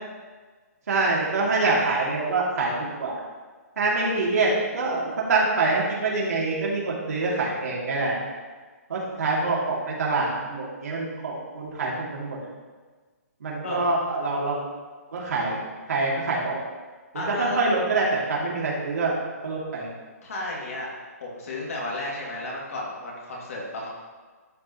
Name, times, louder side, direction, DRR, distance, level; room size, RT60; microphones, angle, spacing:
voice 1, 0.9-3.2 3.8-8.2 8.9-12.4 13.4-14.6 15.1-15.6 15.9-16.6 17.1-19.2 19.4-19.9, right 3 dB, 70° right, -4 dB, 2.5 m, -25 dB
voice 2, 17.1-17.6 20.2-20.9 21.2-23.9, left 2 dB, 55° left, -3 dB, 2.3 m, -33 dB
11.5 x 4.9 x 3.0 m, 1.4 s
hypercardioid pair, 170°, 9 cm